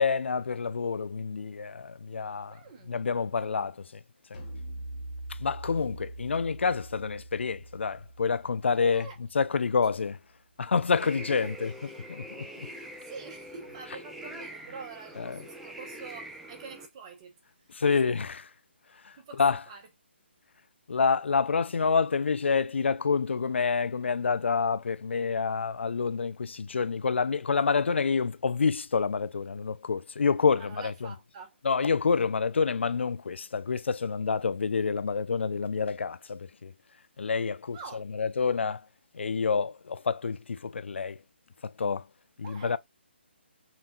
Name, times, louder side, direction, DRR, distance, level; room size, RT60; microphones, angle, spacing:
voice 1, 0.0-2.6 2.9-3.8 5.4-9.1 9.3-10.2 10.6-11.7 12.1-12.5 15.2-15.4 17.7-18.4 19.0-19.1 19.4-19.6 20.9-30.9 31.6-36.7 37.2-38.8 39.1-41.2 41.8-42.0 42.4-42.8, left 5 dB, 75° left, 0.4 m, -28 dB
voice 2, 2.5-3.0 8.9-9.2 11.4-11.5 12.6-17.3 18.0-18.2 19.2-19.4 19.7-19.8 30.5-31.6 37.7-38.0 42.4-42.8, right 5 dB, 30° right, 1.1 m, -46 dB
sound 1, 4.3-9.8, right 1 dB, 30° left, 1.2 m, -43 dB
sound 2, 11.0-16.9, right 1 dB, ahead, 0.5 m, -44 dB
5.8 x 2.6 x 2.4 m
hypercardioid pair, 160°, 6 cm